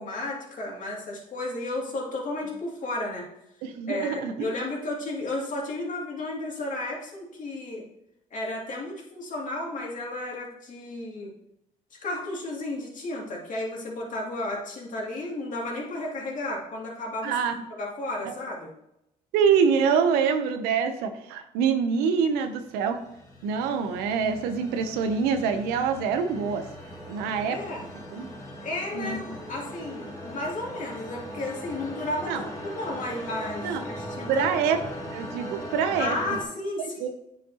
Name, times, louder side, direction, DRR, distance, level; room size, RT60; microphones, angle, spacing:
voice 1, 0.0-3.2 3.9-7.8 8.3-11.3 11.9-17.3 17.8-18.7 27.5-27.9 28.6-34.5 36.0-37.1, left 2 dB, 55° left, -2 dB, 2.4 m, -33 dB
voice 2, 3.6-4.5 17.2-17.5 19.3-23.0 23.4-26.7 27.1-27.6 28.1-28.3 28.9-29.3 32.3-32.4 33.6-33.8 34.3-34.8 35.1-36.1 36.8-37.1, right 6 dB, 85° right, 8 dB, 0.7 m, -25 dB
sound 1, 22.3-36.4, equal, 20° left, 2.4 m, -40 dB
9.0 x 5.2 x 2.9 m, 0.81 s
supercardioid pair, 65°, 16 cm